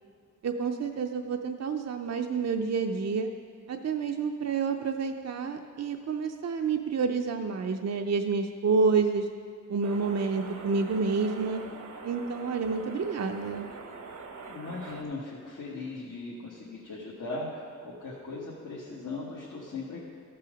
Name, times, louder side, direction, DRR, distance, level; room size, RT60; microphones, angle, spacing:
voice 1, 0.4-3.3 3.7-9.3 9.7-11.6 12.0-13.7, right 5 dB, 55° right, 5 dB, 0.5 m, -29 dB
sound 1, 9.8-15.0, right 4 dB, 75° right, 0.9 m, -43 dB
voice 2, 14.5-20.1, left 3 dB, 80° left, -6 dB, 1.5 m, -38 dB
14.0 x 5.6 x 5.1 m, 2.2 s
wide cardioid pair, 70°, 31 cm